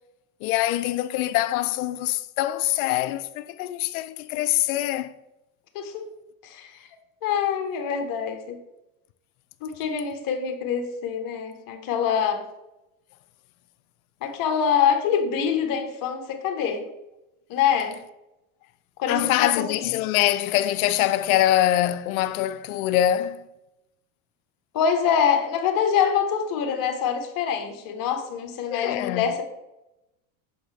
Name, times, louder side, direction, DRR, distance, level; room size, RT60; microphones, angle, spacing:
voice 1, 0.4-5.1 19.1-23.4 28.7-29.3, left 13 dB, 85° left, 0.5 m, -24 dB
voice 2, 5.7-6.0 6.4-6.7 7.2-8.6 9.6-12.4 14.2-16.8 17.5-18.0 19.0-19.6 24.7-29.4, left 7 dB, 50° left, 1.1 m, -25 dB
6.5 x 4.3 x 3.3 m
supercardioid pair, 105°, 42 cm